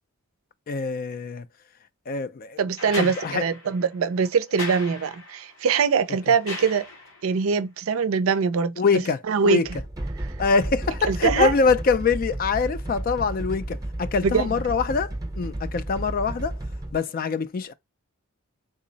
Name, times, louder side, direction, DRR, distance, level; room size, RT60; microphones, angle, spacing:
voice 1, 0.7-1.5 2.1-2.6 3.0-3.4 8.8-9.7 10.4-16.5 16.9-17.7, left 4 dB, 40° left, 0.4 m, -24 dB
voice 2, 2.6-6.8 7.2-8.7 9.3-9.6 10.2-10.3 11.0-11.5 14.2-14.5, right 5 dB, 75° right, 0.4 m, -23 dB
sound 1, 2.8-7.4 8.9-9.0, left 3 dB, 85° left, 2.0 m, -38 dB
sound 2, 9.7-17.0, right 1 dB, 15° right, 0.7 m, -32 dB
3.8 x 2.0 x 3.8 m
head